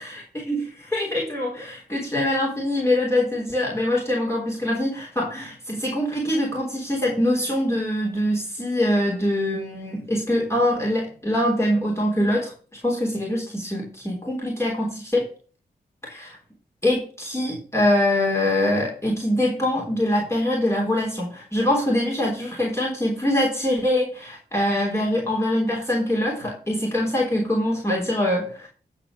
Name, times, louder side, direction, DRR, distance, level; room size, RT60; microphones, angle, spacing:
voice 1, 0.0-12.5 12.8-15.2 16.0-16.4 16.8-28.7, left 1 dB, 15° left, -3 dB, 3.5 m, -24 dB
11.0 x 4.3 x 6.7 m, 0.40 s
cardioid pair, 60°, 17 cm